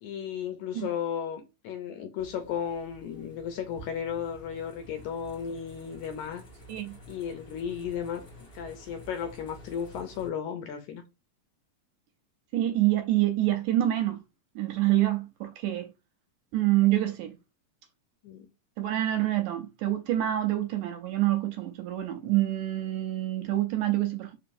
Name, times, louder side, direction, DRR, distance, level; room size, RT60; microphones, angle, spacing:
voice 1, 0.0-6.4 7.1-8.2 8.5-11.0 18.2-18.5, left 8 dB, 80° left, 1.8 m, -34 dB
sound 1, 2.2-10.3, equal, 40° left, 1.5 m, -50 dB
voice 2, 12.5-14.2 14.6-15.9 16.5-17.4 18.8-24.4, right 14 dB, 80° right, 1.8 m, -26 dB
4.7 x 3.7 x 2.5 m
omnidirectional pair, 3.9 m